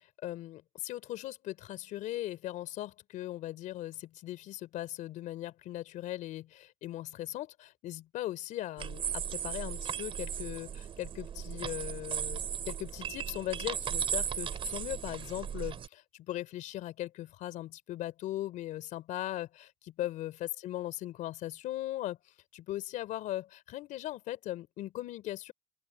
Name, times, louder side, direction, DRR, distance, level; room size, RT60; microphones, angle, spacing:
voice 1, 0.0-25.5, left 14 dB, 65° left, 3.7 m, -39 dB
sound 1, 8.8-15.9, right 8 dB, 40° right, 4.2 m, -36 dB
open air
cardioid pair, 135°, 14 cm